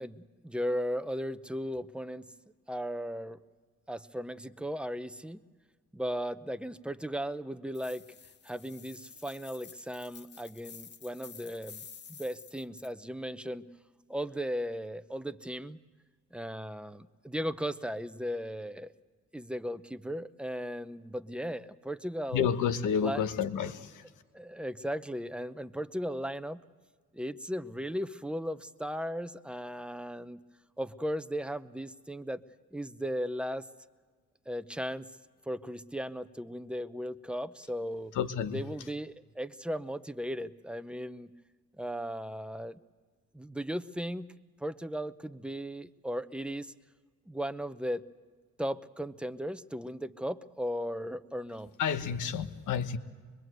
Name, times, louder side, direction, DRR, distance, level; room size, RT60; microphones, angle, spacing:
voice 1, 0.0-2.3 2.7-3.4 3.9-5.4 5.9-8.0 8.4-13.7 14.1-15.8 16.3-18.9 19.3-22.5 23.0-23.2 24.3-26.6 27.1-30.4 30.8-32.4 32.7-33.7 34.5-35.1 35.5-38.1 38.5-41.3 41.8-42.8 43.3-44.3 44.6-46.7 47.3-48.0 48.6-51.7, equal, 5° right, 12 dB, 0.8 m, -36 dB
sound 1, 7.7-12.9, left 6 dB, 35° left, 0.9 m, -51 dB
voice 2, 22.3-24.1 38.1-38.6 51.8-53.0, left 7 dB, 80° left, 9 dB, 1.4 m, -30 dB
25.0 x 22.0 x 7.9 m, 1.5 s
cardioid pair, 90°, 30 cm